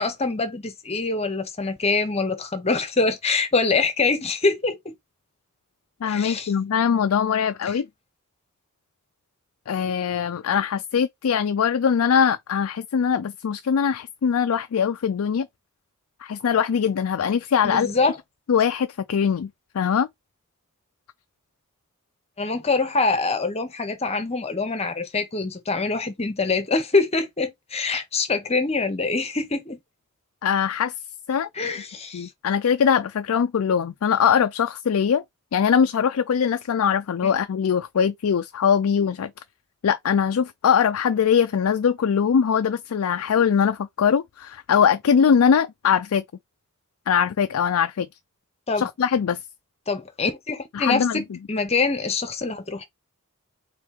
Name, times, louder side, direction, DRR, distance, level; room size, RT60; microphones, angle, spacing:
voice 1, 0.0-4.9 6.0-6.5 17.6-18.2 22.4-29.8 31.5-32.3 48.7-48.9 49.9-51.2 51.5-52.8, left 3 dB, 30° left, 0.9 m, -24 dB
voice 2, 6.0-7.9 9.7-15.5 16.2-18.1 18.5-19.5 19.7-20.1 30.4-30.9 31.3-31.5 32.1-35.2 35.5-39.3 39.8-46.2 47.1-48.1 48.8-49.4 50.7-51.2, left 7 dB, 65° left, 0.4 m, -22 dB
4.4 x 3.2 x 3.6 m
head